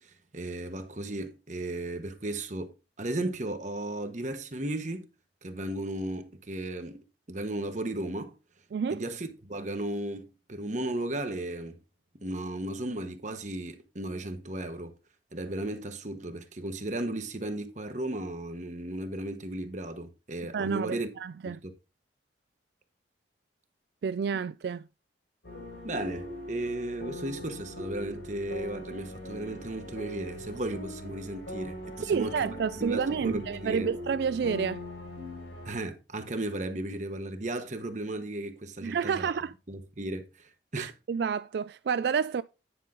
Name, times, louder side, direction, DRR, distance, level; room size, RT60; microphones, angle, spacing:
voice 1, 0.0-5.1 5.4-8.3 8.9-11.8 12.1-14.9 15.3-21.1 21.4-21.7 25.8-32.5 32.8-33.9 35.6-39.3 39.7-40.9, right 1 dB, 40° right, 1.1 m, -35 dB
voice 2, 8.7-9.0 20.5-21.6 24.0-24.9 32.0-34.8 38.8-39.5 40.8-42.4, right 6 dB, 65° right, 0.3 m, -29 dB
Relaxing Piano Music (Loop), 25.4-35.7, left 1 dB, 85° left, 5.5 m, -41 dB
10.0 x 5.5 x 3.7 m
head